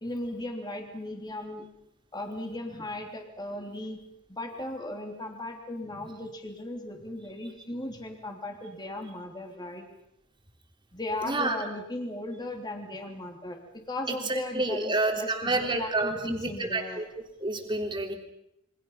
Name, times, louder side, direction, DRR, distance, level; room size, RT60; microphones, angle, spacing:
voice 1, 0.0-1.7 2.1-4.0 4.3-9.9 10.9-17.0, left 1 dB, 20° left, 3 dB, 3.4 m, -37 dB
voice 2, 11.2-11.6 14.1-18.1, right 2 dB, 25° right, 3 dB, 3.4 m, -29 dB
28.5 x 25.0 x 5.8 m, 0.81 s
head